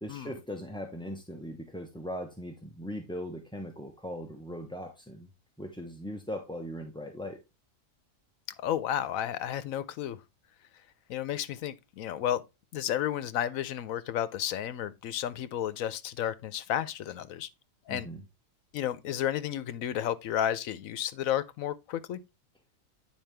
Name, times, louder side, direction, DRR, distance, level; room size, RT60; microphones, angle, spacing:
voice 1, 0.0-5.3 5.6-7.4 17.9-18.2, equal, 5° left, 0.6 m, -39 dB
voice 2, 8.6-10.2 11.1-12.4 12.7-17.5 17.9-18.1 18.7-22.2, left 10 dB, 85° left, 1.1 m, -32 dB
9.2 x 4.9 x 3.3 m
omnidirectional pair, 1.4 m